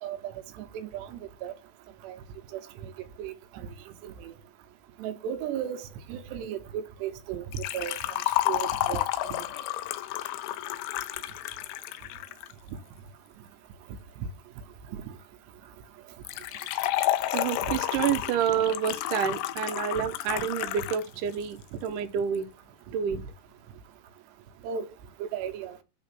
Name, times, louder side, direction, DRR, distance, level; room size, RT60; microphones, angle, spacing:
voice 1, 0.0-0.3 0.6-1.5 2.0-2.2 2.5-2.9 3.2-3.7 4.0-4.3 5.0-5.8 6.1-8.0 8.5-9.0 9.3-9.4 17.6-17.7 20.0-20.1 24.6-24.9 25.2-25.8, right 8 dB, 85° right, 3.2 m, -35 dB
Liquid, 7.5-12.5 16.3-21.1 21.3-21.4 22.4-22.5, left 14 dB, 90° left, 2.9 m, -31 dB
voice 2, 17.3-22.5 22.9-23.2, right 8 dB, 70° right, 2.2 m, -28 dB
9.2 x 4.4 x 6.0 m
omnidirectional pair, 4.8 m